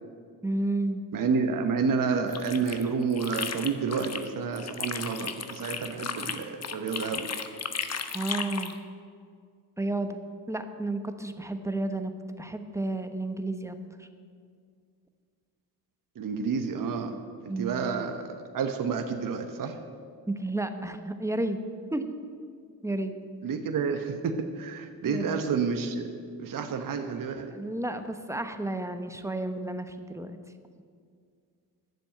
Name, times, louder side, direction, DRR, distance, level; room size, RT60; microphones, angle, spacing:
voice 1, 0.4-1.0 7.1-7.2 8.1-8.8 9.8-10.2 10.5-12.1 12.4-14.1 17.5-17.8 20.3-21.6 21.9-22.1 22.8-23.1 25.1-25.4 27.5-30.4, right 2 dB, 5° right, 8 dB, 1.0 m, -32 dB
voice 2, 1.1-7.3 16.2-17.2 17.4-19.8 23.4-26.1 26.4-27.5, right 5 dB, 50° right, 6 dB, 1.1 m, -29 dB
sound 1, 2.1-4.3 4.6-8.8, left 6 dB, 35° left, 1.0 m, -35 dB
10.5 x 7.1 x 9.0 m, 2.2 s
supercardioid pair, 65°, 43 cm